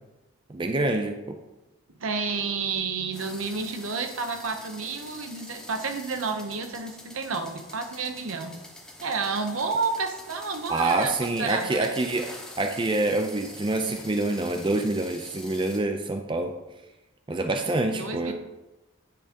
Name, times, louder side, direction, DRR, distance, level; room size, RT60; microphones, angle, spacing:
voice 1, 0.5-1.4 10.7-12.3 12.6-16.5 17.3-18.3, right 2 dB, 25° right, 5 dB, 0.4 m, -26 dB
voice 2, 2.0-8.6 9.0-11.9 17.9-18.3, right 4 dB, 75° right, 6 dB, 0.9 m, -30 dB
sound 1, 3.1-15.8, left 1 dB, 5° left, 0.8 m, -45 dB
9.6 x 3.7 x 5.2 m, 1.0 s
head